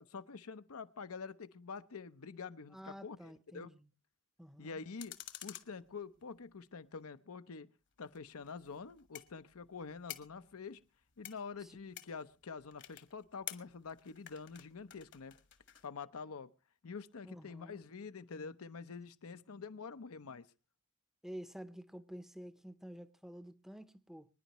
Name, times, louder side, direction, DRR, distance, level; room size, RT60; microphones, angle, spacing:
voice 1, 0.0-3.7 4.6-5.2 5.4-7.7 8.0-10.8 11.2-15.4 15.8-16.5 16.8-20.5, left 5 dB, 80° left, 0.7 m, -47 dB
voice 2, 2.7-3.9 4.4-4.8 11.6-11.7 17.2-17.8 21.2-24.3, equal, ahead, 0.6 m, -50 dB
sound 1, 5.0-6.6 8.0-15.9, left 12 dB, 55° left, 1.2 m, -52 dB
25.0 x 10.0 x 3.0 m
head